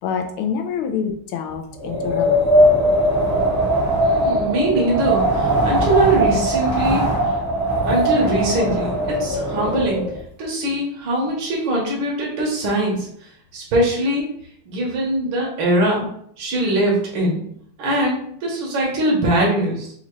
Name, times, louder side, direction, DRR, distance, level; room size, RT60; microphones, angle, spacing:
voice 1, 0.0-2.4, left 7 dB, 80° left, 6 dB, 1.5 m, -26 dB
Wind, 1.7-10.2, right 1 dB, 10° right, 0.7 m, -19 dB
voice 2, 4.1-7.1 7.9-10.0 10.4-14.3 14.7-16.1 16.4-17.4 17.8-19.9, right 1 dB, 70° right, -3 dB, 1.9 m, -22 dB
4.8 x 2.6 x 3.1 m, 0.66 s
omnidirectional pair, 2.3 m